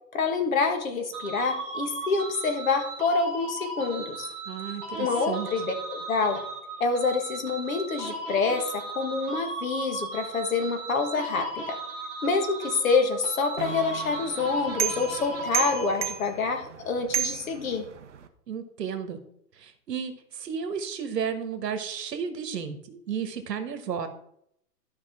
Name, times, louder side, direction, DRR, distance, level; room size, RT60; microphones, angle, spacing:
voice 1, 0.1-4.3 5.0-6.4 6.8-11.8 12.2-17.8, left 4 dB, 55° left, 5 dB, 1.7 m, -27 dB
sound 1, 1.1-16.4, right 2 dB, 10° right, 1.3 m, -36 dB
voice 2, 4.5-5.5 18.5-19.2 19.6-24.1, right 7 dB, 75° right, 8 dB, 1.5 m, -33 dB
sound 2, 13.6-18.3, right 8 dB, 45° right, 0.7 m, -33 dB
13.0 x 5.2 x 3.6 m, 0.73 s
hypercardioid pair, 175°, 50 cm